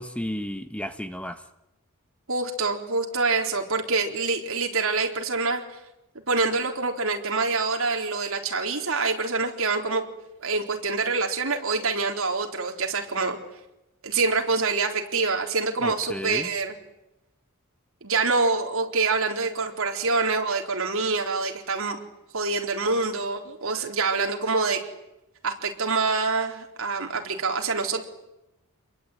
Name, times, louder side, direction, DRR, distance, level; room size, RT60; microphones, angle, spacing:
voice 1, 0.0-1.4 15.8-16.5, equal, 5° left, 9 dB, 1.2 m, -33 dB
voice 2, 2.3-5.6 6.3-10.0 10.4-13.4 14.0-16.8 18.0-22.0 22.3-24.9 25.4-28.0, right 4 dB, 65° right, 2 dB, 4.1 m, -26 dB
28.5 x 22.5 x 9.4 m, 0.93 s
head